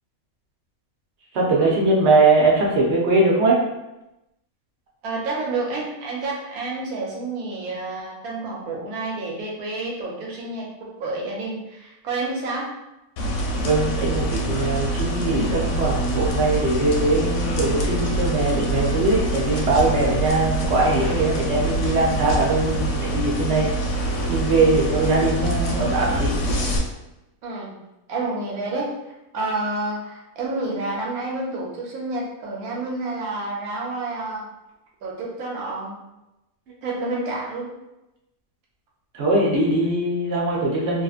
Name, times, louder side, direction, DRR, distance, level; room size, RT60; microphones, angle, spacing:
voice 1, 1.3-3.6 13.6-23.8 24.3-26.3 39.1-41.0, right 2 dB, 60° right, -3 dB, 0.9 m, -21 dB
voice 2, 5.0-10.7 11.0-12.7 27.4-27.7 28.1-34.4 35.0-36.0 36.8-37.7, right 2 dB, 85° right, -3 dB, 1.2 m, -29 dB
sound 1, 13.2-26.8, right 1 dB, 65° left, 0.9 m, -25 dB
2.9 x 2.5 x 2.4 m, 0.94 s
omnidirectional pair, 1.5 m